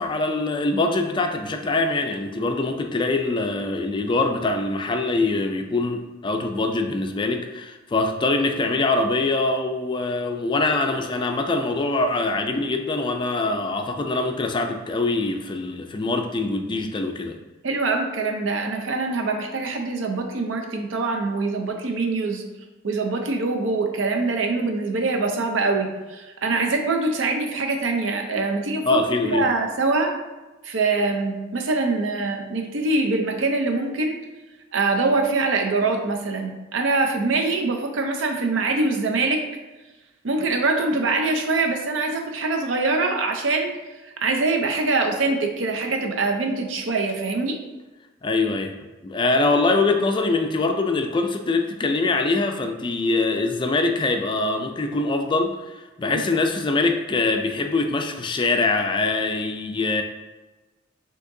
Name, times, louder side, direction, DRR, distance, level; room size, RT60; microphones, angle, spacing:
voice 1, 0.0-17.4 28.8-29.4 48.2-48.8 49.0-60.0, left 3 dB, 25° left, 5 dB, 0.3 m, -23 dB
voice 2, 17.6-22.4 22.8-30.1 30.6-34.2 34.7-39.4 40.2-43.7 44.2-47.6 56.1-56.2, right 3 dB, 75° right, 3 dB, 0.6 m, -24 dB
6.0 x 2.9 x 2.6 m, 1.1 s
head